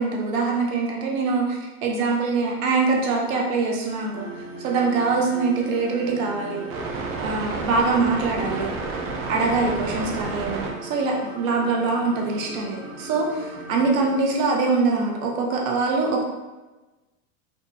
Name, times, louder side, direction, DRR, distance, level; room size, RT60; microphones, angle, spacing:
voice 1, 0.0-4.3 4.6-6.7 7.2-8.7 9.3-16.2, right 4 dB, 75° right, 0 dB, 1.1 m, -23 dB
sound 1, 4.1-14.2, right 3 dB, 35° right, 0.5 m, -33 dB
4.5 x 2.6 x 2.7 m, 1.1 s
supercardioid pair, 150°, 41 cm